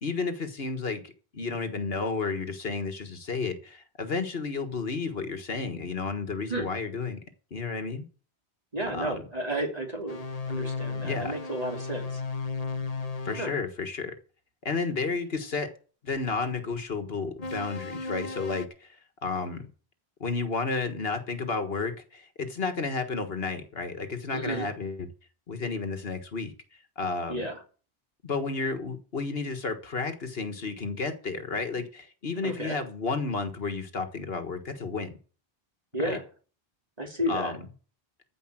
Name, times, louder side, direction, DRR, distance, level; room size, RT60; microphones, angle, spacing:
voice 1, 0.0-7.2 7.5-8.0 8.9-9.2 11.0-11.3 13.2-14.2 14.7-15.7 16.0-19.0 19.2-19.7 20.2-25.1 25.5-26.5 27.0-27.4 28.2-35.1 36.0-36.2 37.3-37.6, left 4 dB, 65° left, 1.7 m, -32 dB
voice 2, 8.7-12.2 13.4-13.5 24.3-24.7 27.3-27.6 32.4-32.8 35.9-36.2 37.0-37.6, right 1 dB, 35° right, 3.3 m, -32 dB
sound 1, 10.1-13.5 17.4-18.7, left 4 dB, 40° left, 0.9 m, -34 dB
15.0 x 5.3 x 7.7 m
omnidirectional pair, 1.1 m